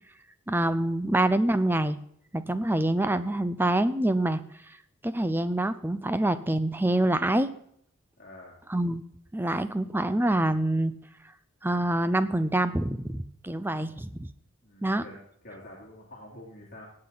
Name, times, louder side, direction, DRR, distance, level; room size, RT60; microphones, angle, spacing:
voice 1, 0.5-2.0 2.3-4.4 5.0-7.5 8.7-9.0 9.3-10.9 11.6-14.3 14.8-15.0, right 1 dB, 10° right, 13 dB, 0.5 m, -26 dB
voice 2, 8.2-8.6 14.6-15.2 15.4-16.9, left 1 dB, 40° left, -5 dB, 2.7 m, -47 dB
17.0 x 8.7 x 4.0 m, 0.71 s
head